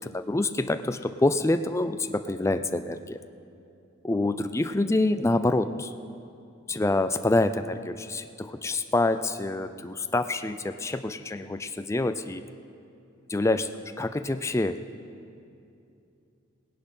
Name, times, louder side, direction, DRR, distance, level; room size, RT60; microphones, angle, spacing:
voice 1, 0.0-3.2 4.0-5.9 6.7-12.4 13.3-13.7 14.0-14.8, left 2 dB, 15° left, 10 dB, 0.4 m, -26 dB
18.0 x 10.0 x 5.7 m, 2.6 s
head